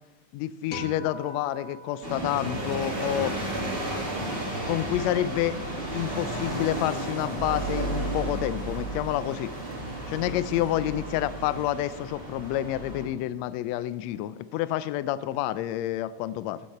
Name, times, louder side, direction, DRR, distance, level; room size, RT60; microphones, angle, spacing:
voice 1, 0.3-3.3 4.7-5.6 5.9-9.5 10.1-16.6, left 13 dB, 80° left, 16 dB, 1.6 m, -29 dB
sound 1, 0.7-3.2, left 2 dB, 35° left, 1.8 m, -42 dB
sound 2, 2.0-13.0, right 1 dB, 20° right, 2.8 m, -33 dB
14.5 x 10.0 x 4.3 m, 1.1 s
omnidirectional pair, 3.4 m